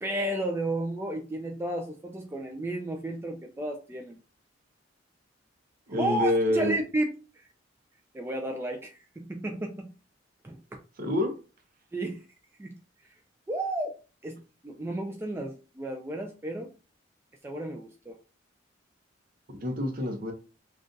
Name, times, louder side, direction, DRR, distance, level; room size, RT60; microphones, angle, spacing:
voice 1, 0.0-4.2 6.0-7.2 8.1-9.9 10.4-10.6 11.9-12.2 12.6-12.7 13.5-14.0 14.2-16.7 17.4-18.2, right 1 dB, 15° right, 1 dB, 0.3 m, -32 dB
voice 2, 5.9-6.7 11.0-11.3 19.6-20.3, left 1 dB, 50° right, 5 dB, 0.7 m, -26 dB
2.5 x 2.3 x 3.8 m, 0.34 s
head